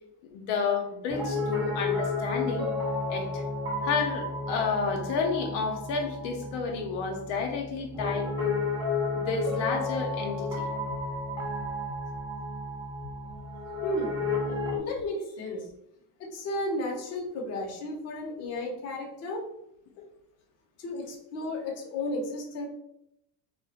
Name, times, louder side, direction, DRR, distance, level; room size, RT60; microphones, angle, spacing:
voice 1, 0.3-2.7 3.1-3.4 3.8-8.6 9.2-10.7 20.0-20.1, left 5 dB, 80° left, 2 dB, 0.6 m, -31 dB
Piano, 1.1-14.8, left 3 dB, 10° right, 0.8 m, -32 dB
voice 2, 13.8-14.2 14.8-15.7 16.2-19.4 20.8-22.7, left 1 dB, 40° left, 0 dB, 0.6 m, -33 dB
2.2 x 2.1 x 2.7 m, 0.80 s
cardioid pair, 130°, 40 cm